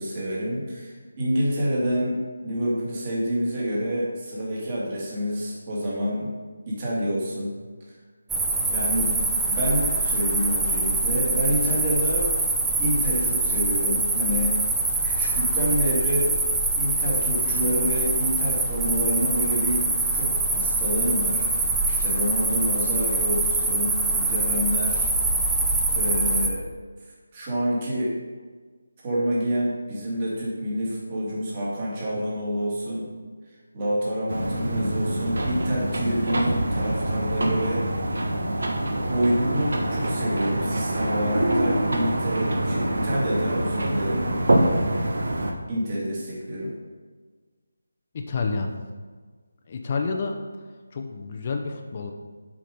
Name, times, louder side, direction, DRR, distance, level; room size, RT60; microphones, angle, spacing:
voice 1, 0.0-6.3 6.7-7.6 8.7-12.3 12.8-14.6 15.0-16.3 16.8-25.3 25.9-26.7 27.3-28.2 29.0-33.1 33.7-37.9 39.1-44.3 45.7-46.7, equal, 30° right, -5 dB, 2.2 m, -27 dB
sound 1, 8.3-26.5, right 2 dB, 5° right, 0.6 m, -24 dB
sound 2, 34.3-45.5, right 1 dB, 70° right, 1.1 m, -25 dB
voice 2, 48.1-48.7 49.7-50.4 50.9-52.1, left 4 dB, 35° left, 3 dB, 0.7 m, -29 dB
7.6 x 5.1 x 5.2 m, 1.4 s
figure-of-eight pair, 165°, 0 cm